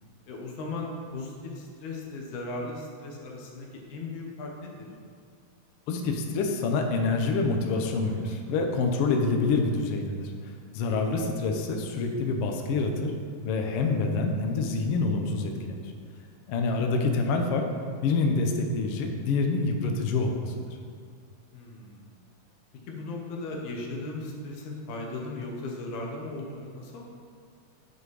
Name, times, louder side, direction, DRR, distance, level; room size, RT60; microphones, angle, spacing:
voice 1, 0.3-4.9 21.5-22.1 22.9-27.1, left 2 dB, 85° left, 0 dB, 2.5 m, -37 dB
voice 2, 5.9-10.3 10.7-13.1 13.4-15.8 16.5-17.7 18.0-20.6, left 3 dB, 70° left, 3 dB, 1.4 m, -26 dB
8.9 x 5.0 x 4.7 m, 2.1 s
omnidirectional pair, 3.3 m